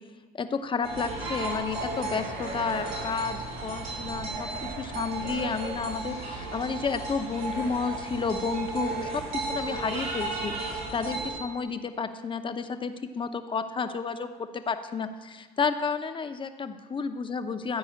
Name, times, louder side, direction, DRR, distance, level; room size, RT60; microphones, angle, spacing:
voice 1, 0.4-14.3 14.5-17.8, left 5 dB, 30° left, 9 dB, 0.8 m, -31 dB
sound 1, 0.8-11.3, right 2 dB, 85° right, 4.4 m, -34 dB
14.5 x 4.8 x 8.9 m, 1.4 s
cardioid pair, 110°, 17 cm